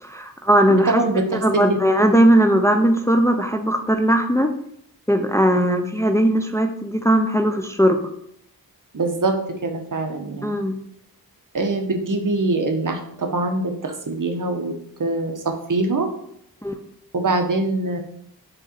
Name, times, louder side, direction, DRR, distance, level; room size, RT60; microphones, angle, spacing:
voice 1, 0.0-1.0 1.4-4.5 5.1-8.0 10.4-10.8 16.6-16.7, right 1 dB, 10° left, 5 dB, 0.5 m, -18 dB
voice 2, 0.7-1.8 5.6-5.9 8.9-9.4 9.6-10.6 11.5-14.7 15.0-16.1 17.1-18.0, right 2 dB, 55° right, 4 dB, 1.0 m, -23 dB
6.6 x 3.7 x 4.3 m, 0.70 s
wide cardioid pair, 70°, 38 cm